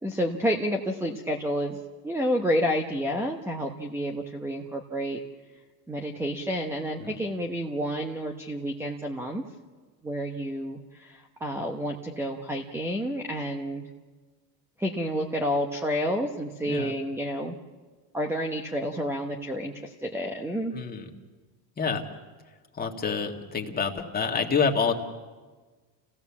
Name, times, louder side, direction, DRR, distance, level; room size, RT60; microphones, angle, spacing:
voice 1, 0.0-1.8 2.0-5.2 5.9-9.4 10.0-13.8 14.8-17.6 18.1-20.7, equal, 5° right, 3 dB, 1.0 m, -29 dB
voice 2, 20.7-21.1 21.8-22.1 22.7-24.9, left 5 dB, 20° left, 1 dB, 1.9 m, -27 dB
29.0 x 17.0 x 7.2 m, 1.4 s
cardioid pair, 140°, 47 cm